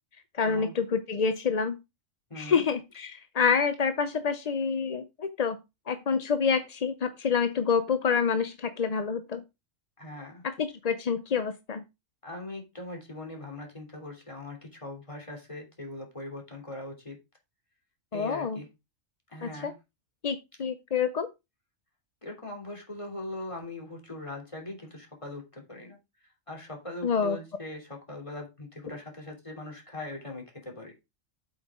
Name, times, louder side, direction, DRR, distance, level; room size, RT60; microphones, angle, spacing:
voice 1, 0.3-1.8 2.4-5.6 5.9-9.4 10.4-11.8 18.1-18.6 19.4-19.7 20.2-21.3 27.0-27.4, left 6 dB, 45° left, 10 dB, 0.6 m, -27 dB
voice 2, 2.3-2.6 10.0-10.4 12.2-17.2 18.1-18.7 19.3-19.7 22.2-26.0 26.5-30.9, left 2 dB, 25° left, 1 dB, 3.1 m, -41 dB
8.8 x 8.0 x 3.6 m, 0.24 s
omnidirectional pair, 1.3 m